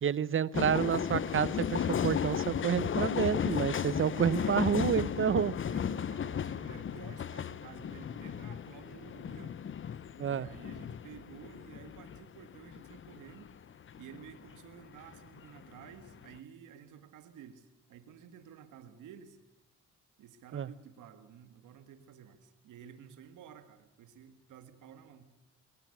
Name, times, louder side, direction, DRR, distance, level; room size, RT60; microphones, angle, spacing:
voice 1, 0.0-5.6 10.2-10.5 20.5-20.7, right 8 dB, 45° right, 20 dB, 0.9 m, -29 dB
sound 1, 0.5-14.6 14.9-16.4, left 8 dB, 40° left, 0.9 m, -35 dB
voice 2, 4.1-4.7 5.7-9.6 10.3-13.5 14.0-19.4 20.2-25.2, right 8 dB, 85° right, 10 dB, 2.0 m, -52 dB
22.5 x 17.5 x 9.9 m, 0.97 s
cardioid pair, 90°, 30 cm